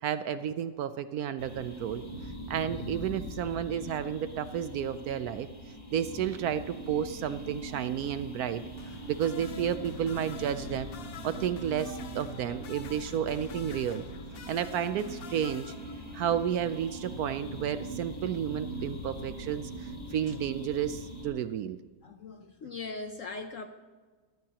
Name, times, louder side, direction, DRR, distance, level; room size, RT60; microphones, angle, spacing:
voice 1, 0.0-2.0 2.5-5.5 5.9-8.6 9.1-10.9 11.2-14.0 14.5-15.7 16.1-21.8, right 9 dB, 70° right, 12 dB, 0.9 m, -32 dB
sound 1, 1.4-21.3, equal, 25° left, 3.2 m, -41 dB
sound 2, 8.8-16.4 17.7-17.9, left 8 dB, 75° left, 0.5 m, -50 dB
voice 2, 22.0-23.7, left 3 dB, 60° left, 6 dB, 0.9 m, -40 dB
22.0 x 15.0 x 2.9 m, 1.4 s
omnidirectional pair, 1.9 m